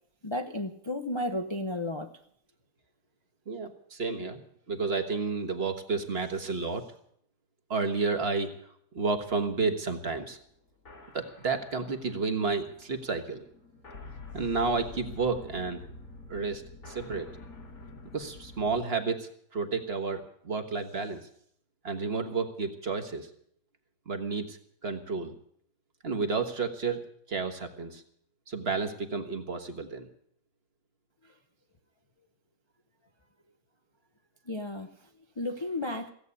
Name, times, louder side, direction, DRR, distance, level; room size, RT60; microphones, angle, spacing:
voice 1, 0.2-2.1 34.5-34.9 35.4-36.1, left 1 dB, 25° left, 5 dB, 0.6 m, -33 dB
voice 2, 3.5-4.4 4.7-6.8 7.7-8.5 8.9-10.4 11.1-13.4 14.3-15.9 16.3-17.3 18.1-21.2 21.8-23.3 24.1-24.6 24.8-25.3 26.0-27.0 27.3-28.0 28.5-30.1, right 4 dB, 45° right, 6 dB, 1.5 m, -31 dB
sound 1, 9.2-18.8, left 3 dB, 80° left, 2.9 m, -48 dB
16.5 x 8.2 x 9.7 m, 0.66 s
omnidirectional pair, 1.5 m